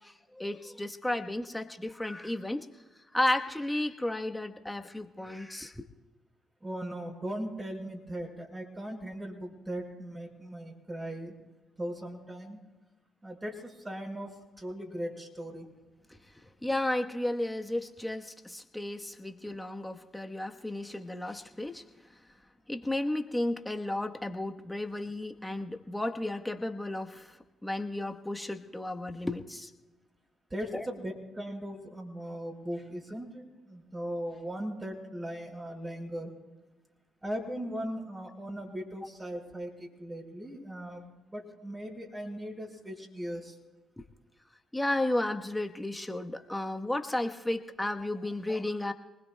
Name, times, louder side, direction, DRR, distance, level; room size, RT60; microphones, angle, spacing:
voice 1, 0.0-2.7 3.1-5.9 16.6-21.8 22.7-29.7 30.7-30.8 44.7-48.9, left 1 dB, 10° left, 5 dB, 1.2 m, -33 dB
voice 2, 6.6-11.3 11.8-12.6 13.2-14.3 14.6-15.7 30.5-36.3 37.2-43.5, equal, 20° right, 0 dB, 5.3 m, -38 dB
27.5 x 20.5 x 2.3 m, 1.2 s
supercardioid pair, 55°, 0 cm